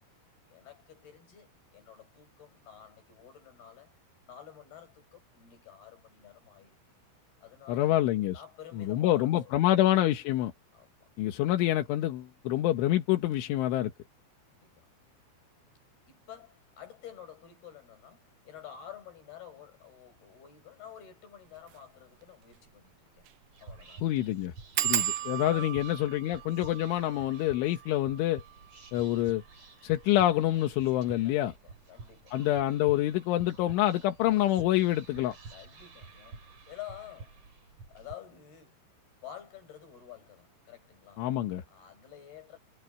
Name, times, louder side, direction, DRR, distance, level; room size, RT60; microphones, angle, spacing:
voice 1, 0.5-3.9 4.3-6.8 7.4-8.0 8.3-9.6 10.7-11.1 14.5-14.9 16.1-23.3 23.6-24.1 24.7-25.8 31.2-32.4 35.5-37.4 37.9-38.8 39.2-41.3 41.7-42.6, left 10 dB, 55° left, 7.7 m, -50 dB
voice 2, 7.7-8.4 8.9-10.5 11.2-13.9 24.0-24.5 24.8-28.4 28.9-29.4 29.8-31.5 32.3-35.4 41.2-41.6, left 14 dB, 85° left, 3.8 m, -27 dB
sound 1, 21.6-21.8 22.2-22.3 22.5-22.6 23.2-23.4 23.7-23.8 24.8-30.0 30.7-31.2 31.5-32.2, right 13 dB, 75° right, 2.2 m, -36 dB
Whispering, 23.5-38.1, right 4 dB, 35° right, 5.2 m, -50 dB
omnidirectional pair, 5.4 m